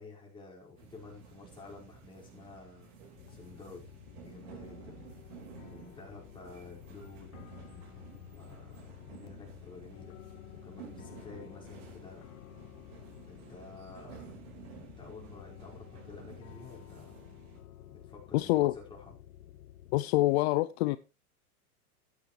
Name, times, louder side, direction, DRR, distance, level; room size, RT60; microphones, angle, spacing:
voice 1, 0.0-3.9 4.2-5.0 5.6-7.4 8.3-10.2 10.6-12.3 13.3-14.3 14.6-17.1 17.9-19.1, left 3 dB, 10° left, 5.2 m, -51 dB
sound 1, 0.8-17.6, right 6 dB, 55° right, 4.5 m, -53 dB
sound 2, 3.1-20.0, left 11 dB, 65° left, 1.0 m, -51 dB
voice 2, 18.3-18.7 19.9-21.0, left 17 dB, 45° left, 0.5 m, -26 dB
13.5 x 9.7 x 3.2 m
hypercardioid pair, 130°, 45 cm